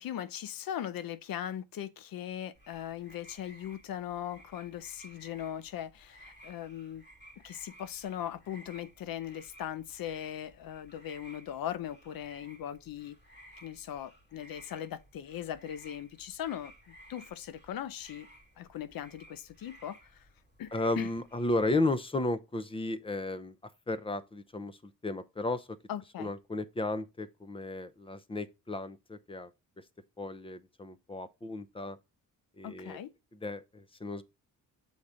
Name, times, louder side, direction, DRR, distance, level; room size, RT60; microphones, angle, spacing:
voice 1, 0.0-7.0 7.4-13.2 13.6-18.3 18.6-20.3 20.6-20.7 21.0-21.1 25.9-26.3 32.6-33.1, left 10 dB, 75° left, 0.7 m, -39 dB
sound 1, 2.5-21.8, equal, 30° left, 2.5 m, -57 dB
voice 2, 20.7-23.5 23.9-25.7 26.2-29.5 30.2-32.0 32.6-33.0 33.3-34.2, left 2 dB, 15° left, 0.6 m, -34 dB
7.1 x 3.9 x 4.9 m
wide cardioid pair, 135°, 35 cm